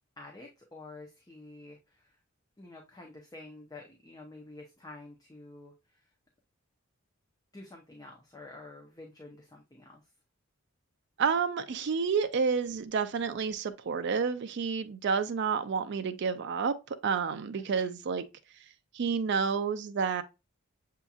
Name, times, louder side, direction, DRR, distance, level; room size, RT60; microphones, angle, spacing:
voice 1, 0.2-2.2 2.6-6.0 7.5-10.0 17.6-18.0, left 2 dB, 15° left, 0.6 m, -49 dB
voice 2, 11.2-16.8 17.0-18.2 18.9-20.2, right 5 dB, 55° right, 0.4 m, -29 dB
7.0 x 2.8 x 2.3 m
head